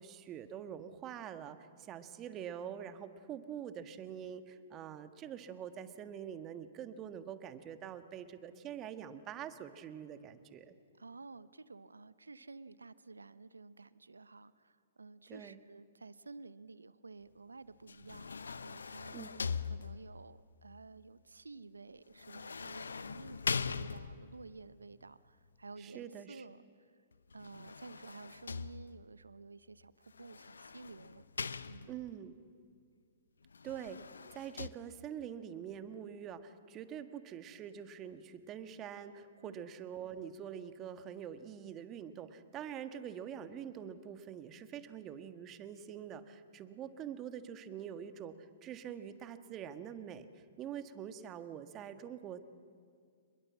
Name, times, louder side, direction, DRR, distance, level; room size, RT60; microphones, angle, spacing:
voice 1, 0.0-10.7 15.3-15.6 19.1-19.3 25.8-26.4 31.9-32.3 33.6-34.0 34.3-52.4, right 9 dB, 25° right, 9 dB, 1.5 m, -45 dB
voice 2, 11.0-18.3 18.6-26.9 27.3-31.2 31.7-31.9 39.4-39.7, right 3 dB, 80° right, 16 dB, 0.8 m, -52 dB
sound 1, 17.9-20.3 22.2-24.4 27.3-29.2 30.2-32.2 33.5-34.7, left 5 dB, 75° left, 0.8 m, -41 dB
28.0 x 22.0 x 7.5 m, 2.2 s
figure-of-eight pair, 115°, 0 cm